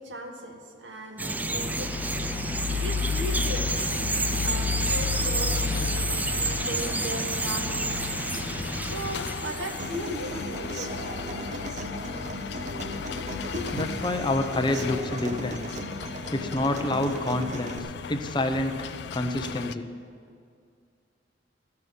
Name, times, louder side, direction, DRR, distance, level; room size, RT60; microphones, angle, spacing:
voice 1, 0.0-2.1 2.8-3.7 4.4-6.0 6.3-8.1 8.8-12.1 13.5-14.0, right 1 dB, 80° right, 3 dB, 1.5 m, -37 dB
sound 1, 1.2-19.7, left 6 dB, 65° left, 0.4 m, -34 dB
Bird vocalization bird call bird song, 1.2-10.1, right 2 dB, 10° right, 0.3 m, -30 dB
Human voice / Acoustic guitar, 9.8-17.8, equal, 40° right, 0.7 m, -37 dB
voice 2, 13.7-15.7 16.3-19.9, left 1 dB, 25° left, 7 dB, 0.7 m, -28 dB
14.0 x 6.9 x 9.3 m, 2.3 s
head